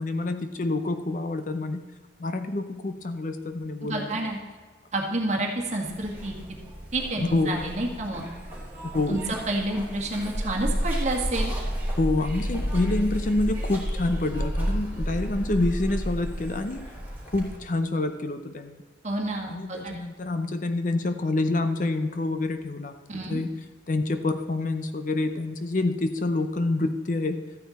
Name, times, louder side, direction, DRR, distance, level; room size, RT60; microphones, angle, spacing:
voice 1, 0.0-1.8 2.2-4.2 7.2-7.6 8.8-9.2 12.0-16.9 17.3-18.8 19.5-22.9 23.3-23.5 23.9-27.4, left 2 dB, 45° left, 8 dB, 0.6 m, -27 dB
voice 2, 3.8-4.4 4.9-6.4 6.9-8.3 9.1-11.5 19.0-20.0 23.1-23.4, right 2 dB, 35° right, 1 dB, 1.8 m, -29 dB
Zipper (clothing), 5.9-17.6, equal, 10° right, 2.8 m, -31 dB
13.0 x 9.3 x 4.2 m, 1.4 s
head